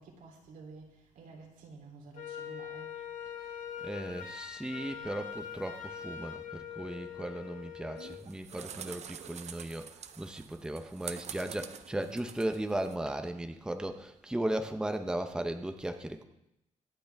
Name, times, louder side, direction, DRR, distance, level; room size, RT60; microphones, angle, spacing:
voice 1, 0.0-3.0, right 4 dB, 90° right, -1 dB, 3.4 m, -51 dB
Wind instrument woodwind instrument, 2.1-8.2, left 8 dB, 65° left, 1.5 m, -43 dB
voice 2, 3.8-16.2, right 1 dB, 5° right, 7 dB, 0.8 m, -36 dB
sound 1, 8.0-13.0, right 8 dB, 55° right, 0.7 m, -46 dB
24.0 x 8.1 x 3.5 m, 0.85 s
cardioid pair, 135°, 14 cm